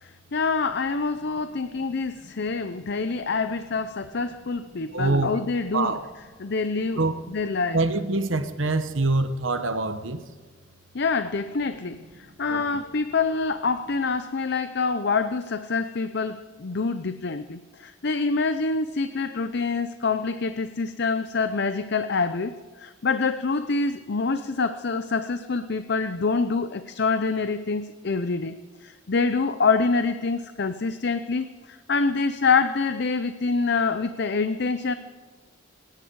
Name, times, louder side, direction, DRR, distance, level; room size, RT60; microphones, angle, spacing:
voice 1, 0.0-5.9 6.4-7.0 7.3-7.8 10.9-12.0 12.4-22.5 22.8-28.5 28.8-34.9, left 4 dB, 55° left, 0.6 m, -26 dB
voice 2, 4.9-5.4 5.7-6.0 7.0-7.2 7.7-10.2 12.5-12.6, right 2 dB, 75° right, 1.1 m, -25 dB
26.0 x 10.5 x 4.7 m
head